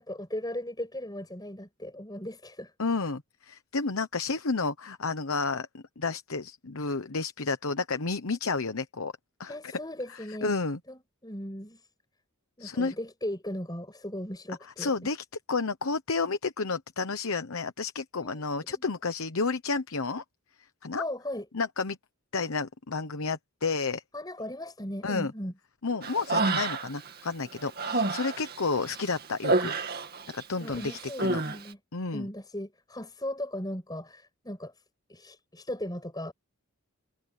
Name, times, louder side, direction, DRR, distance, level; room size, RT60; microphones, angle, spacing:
voice 1, 0.0-2.7 9.5-10.5 10.9-11.8 12.6-15.1 18.2-18.9 20.9-21.4 24.1-25.5 27.9-28.1 30.6-31.8 32.1-34.7 35.1-36.3, left 1 dB, 20° left, 6.2 m, -37 dB
voice 2, 2.8-9.1 9.4-9.7 10.1-10.8 12.6-12.9 14.6-20.2 20.8-21.0 21.5-22.0 22.3-24.0 25.0-25.3 25.8-29.7 30.3-31.4 31.9-32.3, left 4 dB, 70° left, 1.0 m, -31 dB
Human voice, 26.0-27.1 27.5-30.4 30.7-31.6, right 3 dB, 45° right, 2.3 m, -29 dB
head